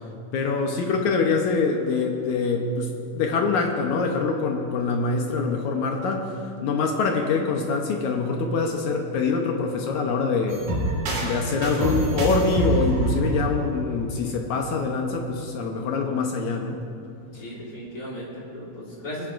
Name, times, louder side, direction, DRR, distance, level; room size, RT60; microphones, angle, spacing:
voice 1, 0.3-6.4 6.6-10.6 11.2-16.8, left 4 dB, 75° left, 2 dB, 1.8 m, -24 dB
sound 1, 10.5-14.4, right 2 dB, 70° right, 4.1 m, -26 dB
voice 2, 11.6-12.1 17.4-19.3, equal, 20° left, -6 dB, 3.4 m, -35 dB
27.5 x 10.5 x 2.5 m, 2.6 s
omnidirectional pair, 4.3 m